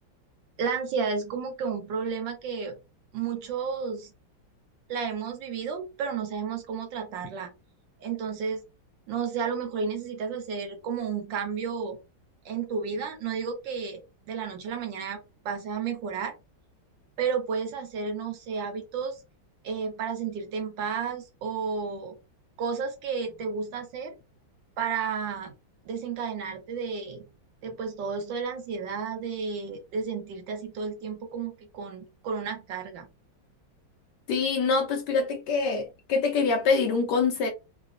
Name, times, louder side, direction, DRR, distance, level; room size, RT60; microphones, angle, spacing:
voice 1, 0.6-2.8 3.1-4.1 4.9-7.5 8.0-8.6 9.1-12.0 12.4-15.2 15.4-16.3 17.2-19.2 19.6-22.1 22.6-24.2 24.8-25.5 25.8-27.3 27.6-33.0, right 6 dB, 70° right, 1.4 m, -32 dB
voice 2, 34.3-37.5, left 4 dB, 75° left, 1.0 m, -25 dB
3.9 x 2.1 x 2.4 m
omnidirectional pair, 2.2 m